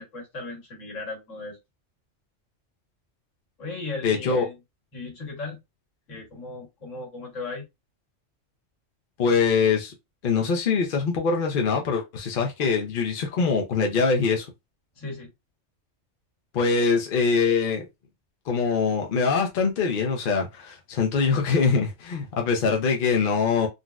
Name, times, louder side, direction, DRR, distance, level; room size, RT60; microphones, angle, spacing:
voice 1, 0.0-1.6 3.6-4.5 4.9-5.6 6.1-7.7 14.9-15.3, left 3 dB, 80° left, 1.6 m, -36 dB
voice 2, 4.0-4.4 9.2-9.9 10.2-14.5 16.5-17.8 18.5-23.7, left 5 dB, 55° left, 0.6 m, -23 dB
3.9 x 2.1 x 2.3 m
omnidirectional pair, 1.3 m